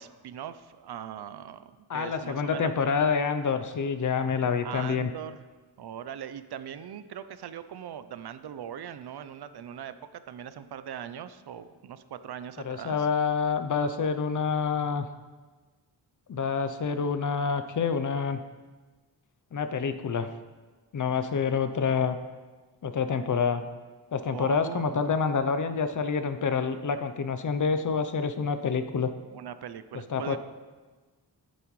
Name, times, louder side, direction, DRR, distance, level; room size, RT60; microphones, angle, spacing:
voice 1, 0.0-2.7 4.6-5.4 5.8-13.1 24.2-25.1 29.3-30.4, right 9 dB, 70° right, 12 dB, 0.6 m, -40 dB
voice 2, 1.9-5.1 12.6-15.1 16.3-18.4 19.5-20.3 20.9-22.2 22.8-23.6 24.1-29.1 30.1-30.4, left 5 dB, 50° left, 10 dB, 0.6 m, -27 dB
12.0 x 9.3 x 3.1 m, 1.3 s
wide cardioid pair, 160°, 40 cm